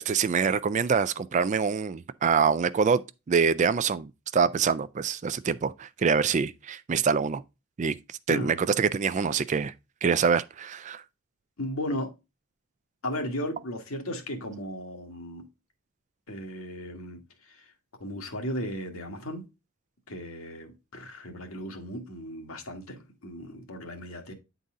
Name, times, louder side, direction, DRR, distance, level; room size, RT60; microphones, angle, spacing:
voice 1, 0.0-3.0 3.3-7.4 7.8-8.0 8.3-9.7 10.0-11.0, right 6 dB, 35° right, 0.3 m, -25 dB
voice 2, 11.6-12.1 13.0-15.5 16.3-17.6 18.0-19.4 20.1-24.3, equal, 70° left, 1.5 m, -36 dB
9.3 x 4.0 x 3.7 m
head